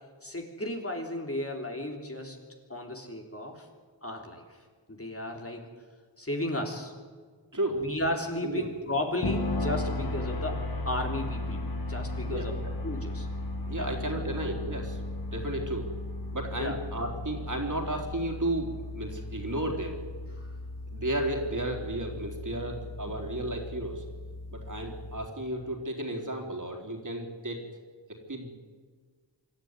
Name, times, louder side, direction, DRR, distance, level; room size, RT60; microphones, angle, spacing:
voice 1, 0.2-2.4 2.7-3.7 4.0-4.4 4.9-5.6 6.2-6.9 7.7-11.6 11.9-12.5 12.8-13.3 13.8-14.2 16.5-16.8 20.4-20.5, left 1 dB, 30° left, 2 dB, 3.3 m, -34 dB
voice 2, 7.5-7.8 8.4-8.7 12.2-12.7 13.7-15.0 15.3-15.9 16.3-20.0 20.9-24.0 24.5-27.7 28.3-28.5, right 1 dB, 40° right, 2 dB, 3.9 m, -33 dB
sound 1, 9.2-25.3, left 2 dB, 50° left, 2.0 m, -36 dB
25.5 x 13.5 x 9.7 m, 1.5 s
wide cardioid pair, 85°, 46 cm